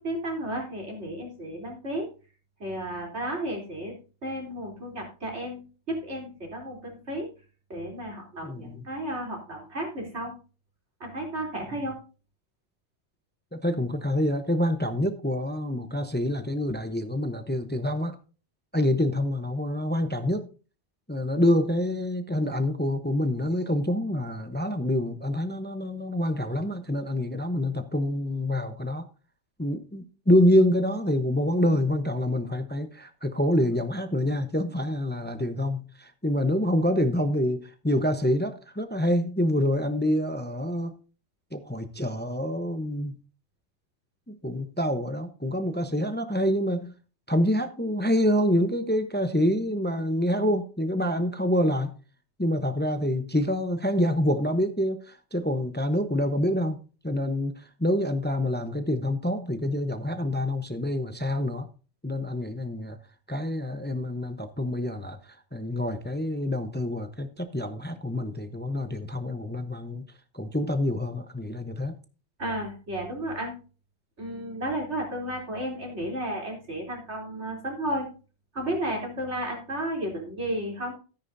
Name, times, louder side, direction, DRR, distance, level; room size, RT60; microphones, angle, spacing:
voice 1, 0.0-2.1 2.6-3.9 4.2-7.3 7.7-10.3 11.0-12.0 72.4-73.5 74.2-78.1 78.5-80.9, right 1 dB, 85° right, 3.9 m, -33 dB
voice 2, 8.4-8.8 13.6-18.2 18.7-20.5 21.1-29.0 29.6-40.9 41.5-43.2 44.3-46.9 47.3-51.9 52.4-56.8 57.0-61.7 62.0-63.0 63.3-70.1 70.3-72.0, left 1 dB, 10° left, 0.8 m, -26 dB
13.5 x 10.0 x 2.7 m
omnidirectional pair, 1.1 m